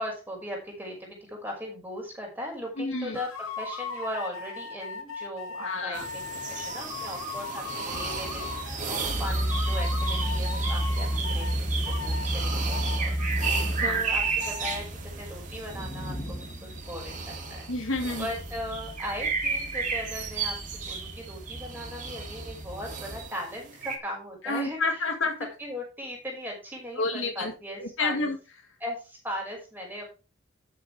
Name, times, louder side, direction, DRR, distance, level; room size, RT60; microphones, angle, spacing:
voice 1, 0.0-13.2 13.8-14.9 15.2-17.6 18.2-20.6 20.9-24.8 25.6-28.3 28.8-30.1, equal, 10° right, -1 dB, 6.0 m, -38 dB
voice 2, 2.8-3.2 5.6-6.0 13.6-14.0 17.7-18.3 24.4-25.5 27.0-28.4, left 3 dB, 75° left, 1 dB, 2.2 m, -30 dB
sound 1, 3.1-8.8 9.2-11.6 11.8-14.8, left 4 dB, 90° left, 2.7 m, -38 dB
sound 2, 5.9-24.0, right 5 dB, 40° right, 2.8 m, -34 dB
sound 3, 7.9-23.2, equal, 30° left, 2.8 m, -33 dB
12.5 x 7.6 x 3.5 m, 0.31 s
head